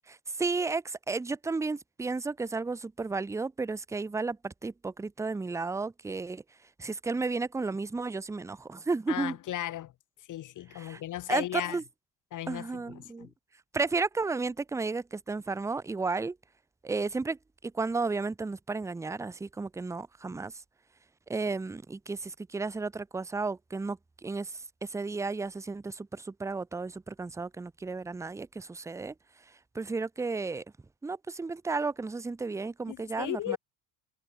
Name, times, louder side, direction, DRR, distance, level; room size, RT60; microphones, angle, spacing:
voice 1, 0.1-6.4 6.8-9.4 10.7-11.0 11.3-11.8 12.5-13.3 13.7-16.4 16.8-20.5 21.3-29.1 29.7-30.6 31.0-33.6, right 3 dB, 10° right, 0.5 m, -33 dB
voice 2, 9.1-9.9 10.3-11.8 12.3-13.3 32.9-33.6, left 13 dB, 50° left, 0.9 m, -36 dB
supercardioid pair, 80°, 40 cm